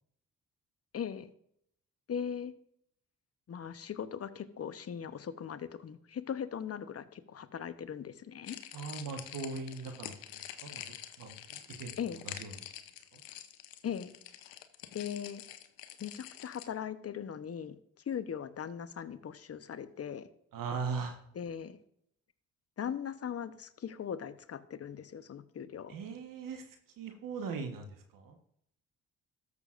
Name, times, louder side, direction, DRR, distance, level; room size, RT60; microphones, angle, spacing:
voice 1, 0.9-1.3 2.1-2.5 3.5-8.6 12.0-12.2 13.8-14.1 14.9-15.4 16.0-17.8 18.1-20.3 21.3-21.8 22.8-26.0, left 8 dB, 45° left, 12 dB, 0.9 m, -39 dB
sound 1, 8.4-16.7, left 12 dB, 90° left, 0.7 m, -47 dB
voice 2, 8.7-10.8 11.2-11.9 12.2-12.5 13.1-13.2 20.5-21.2 25.9-26.7 27.0-28.4, right 5 dB, 70° right, 5 dB, 1.3 m, -40 dB
13.0 x 6.7 x 2.5 m, 0.70 s
supercardioid pair, 60°, 34 cm